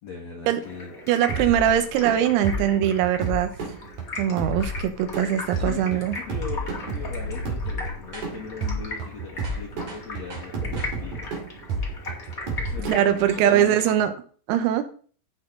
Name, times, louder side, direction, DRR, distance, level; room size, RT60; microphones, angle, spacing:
voice 1, 0.0-0.9 5.5-11.4 12.6-14.1, left 5 dB, 80° left, 0 dB, 1.5 m, -39 dB
Stream, 0.6-14.0, left 2 dB, 45° left, 1.0 m, -39 dB
voice 2, 1.1-3.5 4.2-6.2 12.9-14.1 14.5-14.8, right 10 dB, 85° right, 9 dB, 3.8 m, -22 dB
sound 1, 1.3-13.6, right 2 dB, 45° right, 2.7 m, -32 dB
sound 2, 8.1-8.5 8.9-9.0 9.4-11.0 11.6-11.7 13.0-13.2, right 1 dB, 30° right, 2.5 m, -43 dB
16.5 x 6.0 x 3.9 m, 0.43 s
omnidirectional pair, 6.0 m